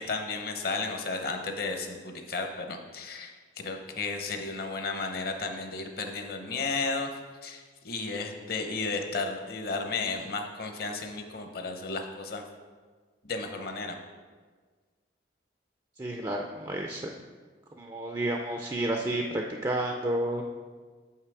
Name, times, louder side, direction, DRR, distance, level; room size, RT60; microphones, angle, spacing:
voice 1, 0.0-3.4 3.6-7.1 7.4-12.4 13.2-13.9, left 3 dB, 50° left, 4 dB, 0.8 m, -33 dB
voice 2, 16.0-17.1 17.8-20.4, right 1 dB, 20° right, 1 dB, 0.4 m, -31 dB
7.2 x 5.7 x 4.8 m, 1.5 s
head